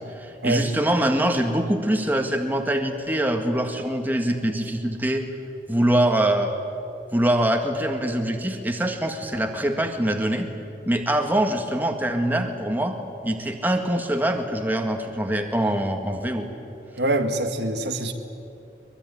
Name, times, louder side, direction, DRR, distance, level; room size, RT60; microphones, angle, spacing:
voice 1, 0.1-5.3 5.7-6.5 7.1-10.5 10.9-13.0 13.2-16.5, right 1 dB, 10° right, 4 dB, 1.8 m, -24 dB
voice 2, 17.0-18.1, right 1 dB, 80° right, 6 dB, 1.9 m, -24 dB
23.0 x 22.5 x 9.9 m, 2.7 s
head